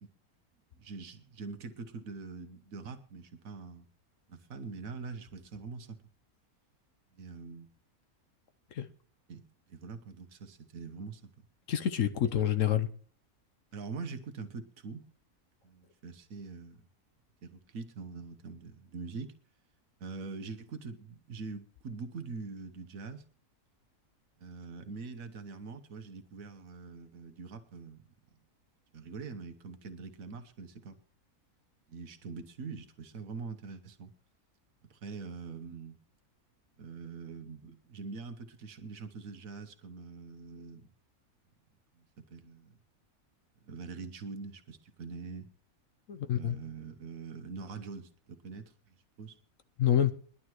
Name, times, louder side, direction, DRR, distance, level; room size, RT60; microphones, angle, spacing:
voice 1, 0.8-3.9 4.3-6.0 7.1-7.7 9.3-9.4 9.7-11.3 13.7-15.1 15.6-16.9 17.4-19.3 20.0-23.2 24.4-28.0 28.9-31.0 31.9-34.1 34.9-36.0 36.8-40.9 42.0-42.8 43.6-45.5 46.1-49.4, right 4 dB, 65° right, 1.5 m, -44 dB
voice 2, 11.7-12.9 46.1-46.6 49.8-50.1, left 10 dB, 65° left, 1.1 m, -27 dB
21.0 x 11.5 x 3.0 m
omnidirectional pair, 1.6 m